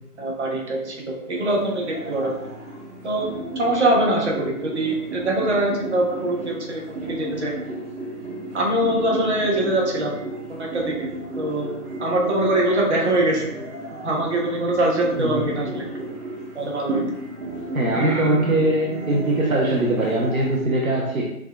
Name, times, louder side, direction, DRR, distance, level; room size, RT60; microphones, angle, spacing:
voice 1, 0.2-2.3 3.0-3.3 3.6-7.5 8.5-10.1 10.5-11.1 11.3-11.7 12.0-13.4 14.0-15.9 16.5-17.0 17.9-18.5, right 1 dB, 45° right, -1 dB, 1.0 m, -23 dB
sound 1, 1.3-20.6, right 1 dB, 80° right, 1.3 m, -34 dB
voice 2, 17.7-21.2, right 2 dB, 65° right, -2 dB, 0.7 m, -21 dB
5.9 x 2.4 x 2.2 m, 0.84 s
figure-of-eight pair, 145°, 46 cm